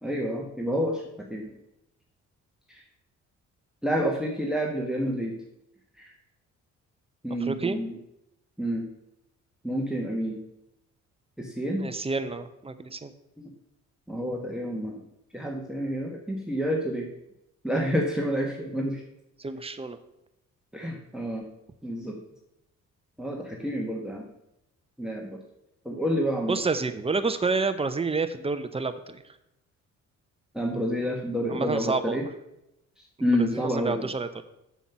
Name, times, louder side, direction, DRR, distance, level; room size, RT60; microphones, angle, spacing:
voice 1, 0.0-1.5 2.7-2.8 3.8-5.3 6.0-6.1 7.2-8.0 8.6-8.8 9.6-10.4 11.4-11.9 13.4-13.5 14.1-15.0 15.3-17.1 17.6-19.0 20.7-21.4 21.8-22.2 23.2-24.2 25.0-25.4 25.8-26.6 30.5-32.3 33.2-34.0, equal, ahead, 0 dB, 1.4 m, -29 dB
voice 2, 7.4-7.8 11.8-13.1 19.4-20.0 26.5-29.2 31.5-32.2 33.4-34.3, right 4 dB, 20° right, 10 dB, 0.8 m, -29 dB
7.2 x 7.1 x 5.9 m, 0.86 s
cardioid pair, 90°, 30 cm